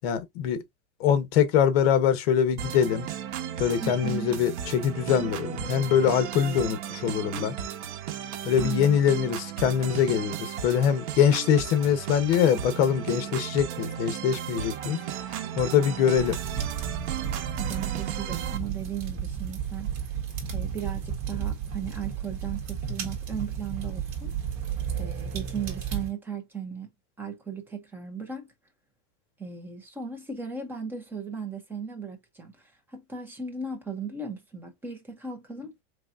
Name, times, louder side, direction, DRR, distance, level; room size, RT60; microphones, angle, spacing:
voice 1, 0.0-0.6 1.0-3.1 3.6-7.5 8.4-15.0 15.6-16.4, left 8 dB, 55° left, 0.9 m, -23 dB
sound 1, 2.6-18.6, right 9 dB, 65° right, 0.9 m, -35 dB
voice 2, 3.8-4.4 8.6-9.0 17.6-19.9 20.5-24.3 25.0-26.9 27.2-28.5 29.4-32.5 32.9-35.7, right 5 dB, 5° right, 0.4 m, -36 dB
sound 2, 16.2-26.1, right 8 dB, 45° right, 1.6 m, -33 dB
4.0 x 3.3 x 2.4 m
supercardioid pair, 165°, 37 cm